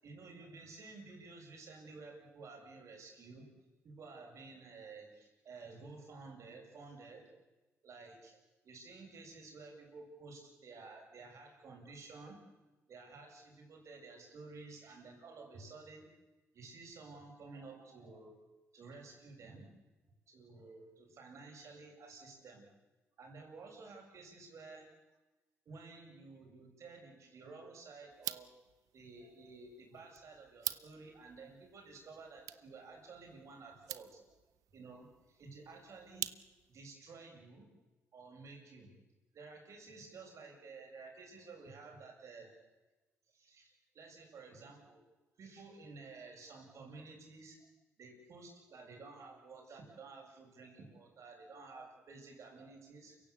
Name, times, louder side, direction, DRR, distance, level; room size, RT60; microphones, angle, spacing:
voice 1, 0.0-3.5 3.8-7.3 7.8-8.4 8.6-12.4 12.9-16.1 16.5-18.4 18.7-19.7 20.3-22.7 23.2-24.9 25.6-28.5 28.9-34.2 34.7-36.3 36.7-37.7 38.1-38.9 39.3-42.5 43.3-45.0 45.4-47.6 48.0-53.2, right 3 dB, 65° right, 2 dB, 7.8 m, -53 dB
sound 1, 28.1-36.8, right 12 dB, 80° right, 0.8 m, -47 dB
29.0 x 16.5 x 8.6 m, 1.1 s
cardioid pair, 75°, 6 cm